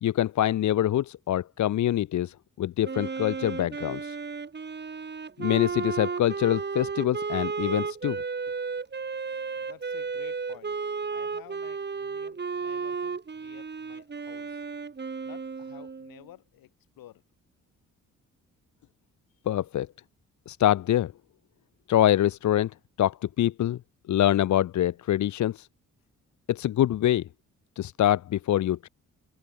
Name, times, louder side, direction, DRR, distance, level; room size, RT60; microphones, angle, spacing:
voice 1, 0.0-4.2 5.4-8.2 19.5-19.9 20.5-21.1 21.9-22.7 23.0-23.8 24.1-25.7 26.5-27.2 27.8-28.9, left 12 dB, 55° left, 0.7 m, -25 dB
Wind instrument woodwind instrument, 2.8-16.2, right 5 dB, 30° right, 1.5 m, -33 dB
voice 2, 9.6-10.8 11.1-14.6 15.2-17.2 19.3-19.4, left 13 dB, 75° left, 5.2 m, -52 dB
hypercardioid pair, 50°, 35 cm